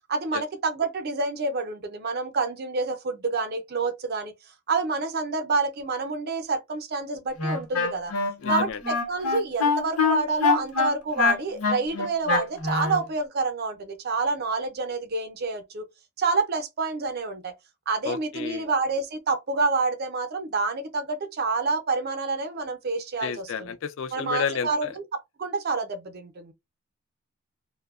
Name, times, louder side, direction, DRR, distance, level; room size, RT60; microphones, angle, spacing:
voice 1, 0.1-4.3 4.7-8.1 8.5-15.9 16.2-17.5 17.9-23.7 24.1-25.0 25.4-26.5, right 4 dB, 45° right, 0.5 m, -28 dB
Wind instrument woodwind instrument, 7.4-13.0, left 5 dB, 75° left, 0.9 m, -24 dB
voice 2, 8.4-8.8 18.0-18.7 23.2-24.7, left 7 dB, 60° left, 0.3 m, -31 dB
2.6 x 2.1 x 2.3 m
head